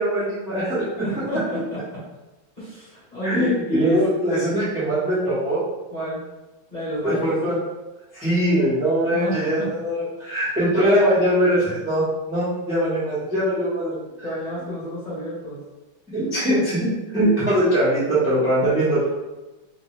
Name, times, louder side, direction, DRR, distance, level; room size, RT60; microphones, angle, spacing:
voice 1, 0.0-1.0 3.2-5.6 7.0-7.6 8.1-14.0 16.1-16.8 17.1-19.1, equal, ahead, -11 dB, 0.9 m, -21 dB
voice 2, 0.9-2.0 2.6-4.0 4.3-4.5 5.9-6.2 6.7-7.3 9.1-9.7 14.2-15.6, equal, 25° left, -11 dB, 1.3 m, -31 dB
3.4 x 2.7 x 3.1 m, 1.1 s
omnidirectional pair, 2.3 m